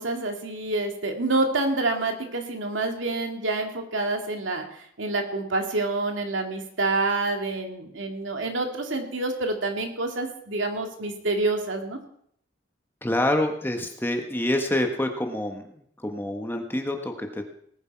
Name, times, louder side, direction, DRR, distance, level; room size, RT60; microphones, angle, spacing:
voice 1, 0.0-12.0, right 2 dB, 80° right, 3 dB, 2.3 m, -27 dB
voice 2, 13.0-17.4, left 1 dB, 10° left, 4 dB, 1.4 m, -27 dB
19.0 x 10.0 x 4.7 m, 0.68 s
head